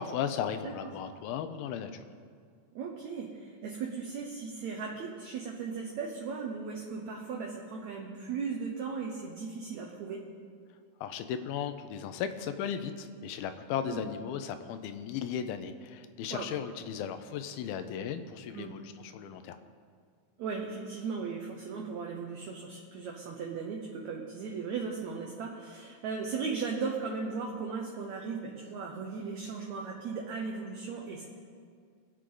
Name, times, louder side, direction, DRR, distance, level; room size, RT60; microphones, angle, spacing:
voice 1, 0.0-2.0 11.0-19.6, left 8 dB, 90° left, 9 dB, 2.6 m, -36 dB
voice 2, 2.7-10.3 13.9-14.1 16.3-16.5 18.5-18.7 20.4-31.3, right 5 dB, 70° right, 0 dB, 1.9 m, -37 dB
22.0 x 8.2 x 3.8 m, 2.1 s
omnidirectional pair, 4.2 m